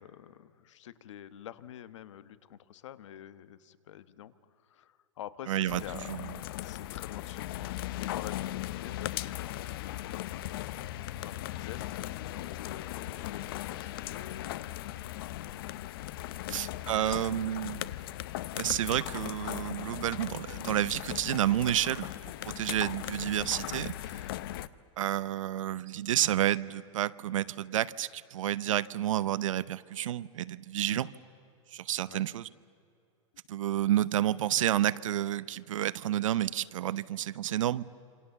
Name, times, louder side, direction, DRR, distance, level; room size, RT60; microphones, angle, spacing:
voice 1, 0.0-10.9 11.2-15.5 16.3-16.7 17.0-17.2 30.9-31.0 32.1-32.3, left 11 dB, 65° left, 14 dB, 1.3 m, -48 dB
voice 2, 5.5-5.8 6.1-6.3 16.5-17.8 18.6-22.1 22.5-23.9 25.0-31.1 31.7-32.5 33.5-37.8, right 12 dB, 75° right, 16 dB, 0.9 m, -30 dB
sound 1, 5.7-24.7, left 14 dB, 45° left, 0.7 m, -38 dB
28.0 x 26.0 x 7.2 m, 2.6 s
supercardioid pair, 170°, 17 cm